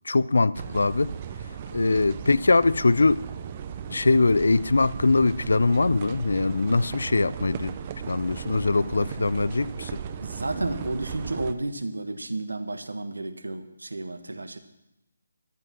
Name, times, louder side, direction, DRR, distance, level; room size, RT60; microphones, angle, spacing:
voice 1, 0.1-1.1 1.7-3.3 3.9-7.7 8.1-9.9, left 3 dB, 65° left, 19 dB, 0.5 m, -22 dB
sound 1, 0.5-11.5, right 8 dB, 30° right, 0.8 m, -37 dB
voice 2, 10.2-14.6, right 2 dB, 70° right, 9 dB, 1.4 m, -32 dB
13.5 x 11.0 x 6.0 m, 0.89 s
figure-of-eight pair, 145°, 0 cm